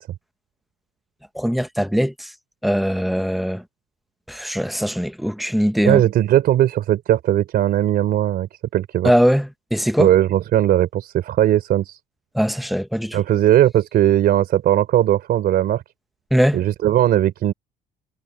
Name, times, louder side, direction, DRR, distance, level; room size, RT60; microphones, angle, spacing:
voice 1, 1.3-2.3 2.6-3.6 4.3-6.0 9.0-10.1 12.3-13.2 16.3-16.6, equal, ahead, 1.2 m, -20 dB
voice 2, 5.8-9.1 10.0-12.0 13.1-15.8 16.5-17.5, right 12 dB, 65° right, 3.7 m, -18 dB
cardioid pair, 110°, 17 cm